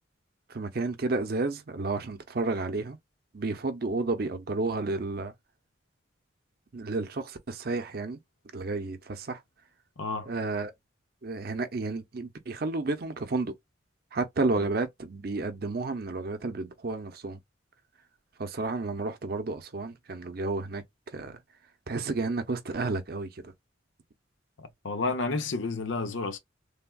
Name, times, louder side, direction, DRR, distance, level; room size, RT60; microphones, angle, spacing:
voice 1, 0.5-3.0 3.3-5.3 6.7-8.2 8.5-9.4 10.3-10.7 11.2-13.5 14.1-17.4 18.4-20.8 21.1-21.4 21.9-23.5, right 3 dB, 50° right, 0.6 m, -31 dB
voice 2, 10.0-10.3 24.6-26.4, left 3 dB, 85° left, 0.7 m, -31 dB
3.4 x 2.2 x 2.3 m
head